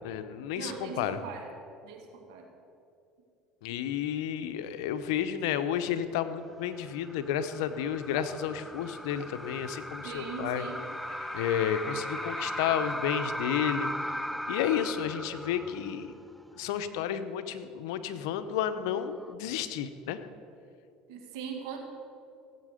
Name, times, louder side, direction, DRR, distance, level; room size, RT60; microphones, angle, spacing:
voice 1, 0.0-1.2 3.6-10.7 11.3-13.9 14.5-16.1 16.5-20.2, left 9 dB, 85° left, 10 dB, 0.8 m, -31 dB
voice 2, 0.6-1.5 1.8-2.5 10.0-10.8 21.1-21.8, right 6 dB, 85° right, 2 dB, 2.0 m, -40 dB
sound 1, 6.7-16.2 16.6-16.7 18.8-19.3, equal, ahead, 0.4 m, -38 dB
sound 2, 8.1-8.4 9.1-9.3 10.5-13.2, left 5 dB, 30° left, 1.5 m, -48 dB
16.5 x 8.5 x 5.1 m, 2.6 s
supercardioid pair, 105°, 2 cm